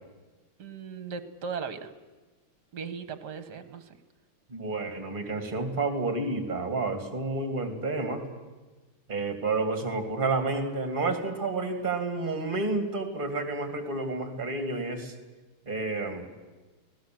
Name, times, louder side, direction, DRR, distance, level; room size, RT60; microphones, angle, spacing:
voice 1, 0.6-1.9 2.7-4.0, right 5 dB, 50° right, 10 dB, 1.8 m, -37 dB
voice 2, 4.5-8.2 9.1-15.1 15.7-16.3, right 3 dB, 20° right, 6 dB, 2.6 m, -30 dB
25.0 x 18.0 x 7.8 m, 1.2 s
omnidirectional pair, 2.4 m